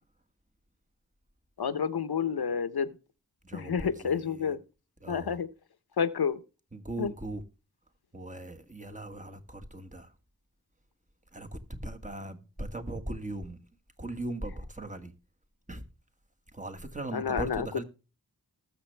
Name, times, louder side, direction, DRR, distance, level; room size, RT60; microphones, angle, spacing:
voice 1, 1.6-3.0 3.5-4.6 5.1-5.5 6.0-6.4 7.0-7.1 17.1-17.8, left 7 dB, 85° left, 0.9 m, -29 dB
voice 2, 3.4-4.6 5.0-5.4 6.7-7.4 8.1-10.1 11.3-13.6 14.0-15.1 15.7-15.8 16.5-17.8, right 1 dB, 20° right, 1.5 m, -39 dB
19.5 x 6.8 x 3.3 m
wide cardioid pair, 75°, 37 cm